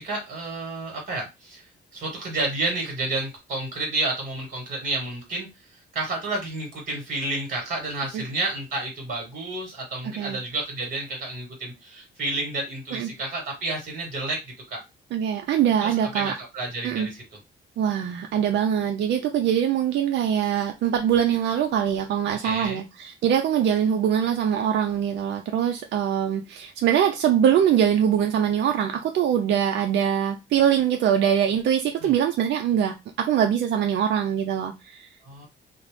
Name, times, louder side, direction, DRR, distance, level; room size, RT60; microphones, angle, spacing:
voice 1, 0.0-1.6 1.9-5.5 5.9-14.4 14.7-14.8 15.8-17.2 22.4-22.8 32.0-32.1 35.2-35.5, right 2 dB, 45° right, 1.3 m, -30 dB
voice 2, 15.1-16.3 16.8-17.1 17.8-35.1, right 9 dB, 65° right, 0.4 m, -23 dB
2.5 x 2.0 x 3.1 m
cardioid pair, 90°, 20 cm